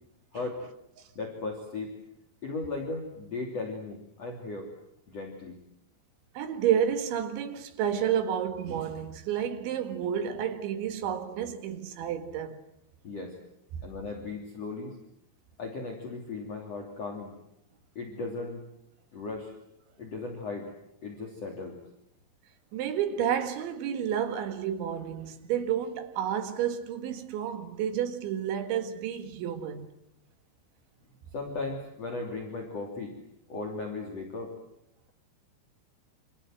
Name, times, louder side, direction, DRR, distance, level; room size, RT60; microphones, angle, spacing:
voice 1, 1.2-1.9 2.4-4.7 5.1-5.6 13.0-13.4 13.8-15.0 15.6-17.4 18.0-18.6 19.1-19.5 20.0-20.7 21.0-21.8 31.3-33.1 33.5-34.5, left 3 dB, 40° left, 3.7 m, -36 dB
voice 2, 6.4-12.6 22.7-29.9, right 9 dB, 90° right, 4.3 m, -30 dB
27.5 x 26.5 x 7.8 m
omnidirectional pair, 5.1 m